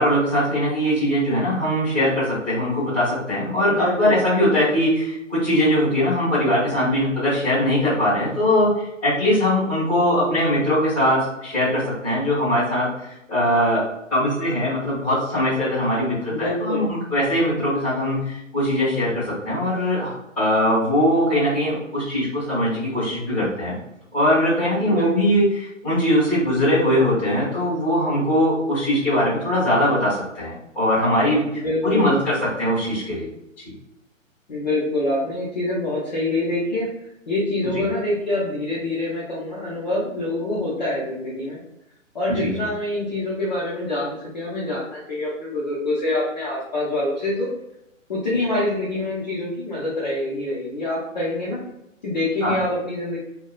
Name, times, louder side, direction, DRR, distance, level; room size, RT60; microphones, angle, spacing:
voice 1, 0.0-13.8 14.1-23.7 24.1-33.3 37.7-37.9 42.3-42.5 52.4-52.6, equal, 5° left, -12 dB, 0.8 m, -21 dB
voice 2, 3.6-4.2 16.3-16.8 24.8-25.1 31.5-32.2 34.5-36.9 37.3-41.6 42.1-47.5 48.1-51.6 52.0-53.2, left 1 dB, 35° left, -7 dB, 0.5 m, -25 dB
3.0 x 2.1 x 2.2 m, 0.84 s
hypercardioid pair, 155°, 40 cm